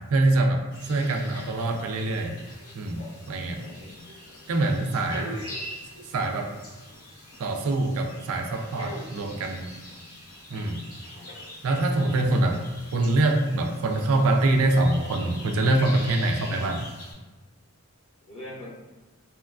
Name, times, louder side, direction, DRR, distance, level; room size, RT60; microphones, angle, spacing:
voice 1, 0.1-2.4 2.7-3.0 3.3-3.6 4.5-5.3 6.1-6.5 7.4-9.7 10.5-10.8 11.6-12.6 12.9-16.9, right 2 dB, 75° right, 3 dB, 0.4 m, -24 dB
sound 1, 0.7-17.1, left 1 dB, 85° left, 0.8 m, -43 dB
voice 2, 0.8-1.2 3.6-4.1 11.1-11.3 18.3-18.7, left 1 dB, 65° left, -8 dB, 1.2 m, -44 dB
2.9 x 2.3 x 2.3 m, 1.2 s
head